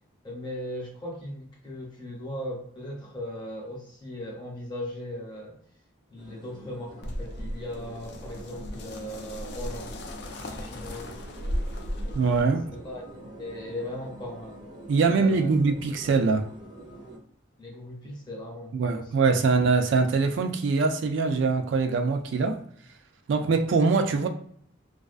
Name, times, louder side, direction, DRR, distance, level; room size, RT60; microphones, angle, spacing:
voice 1, 0.2-5.6 6.1-10.0 10.4-11.2 12.7-13.0 13.4-14.6 15.0-15.5 17.6-19.3, left 1 dB, 25° left, 0.7 m, -38 dB
sound 1, 6.2-17.2, right 1 dB, 20° right, 0.6 m, -46 dB
sound 2, 7.0-12.4, equal, 55° left, 0.3 m, -36 dB
voice 2, 12.1-12.6 14.9-16.5 18.7-22.6 23.3-24.3, right 4 dB, 70° right, 0.3 m, -23 dB
2.3 x 2.2 x 2.4 m
head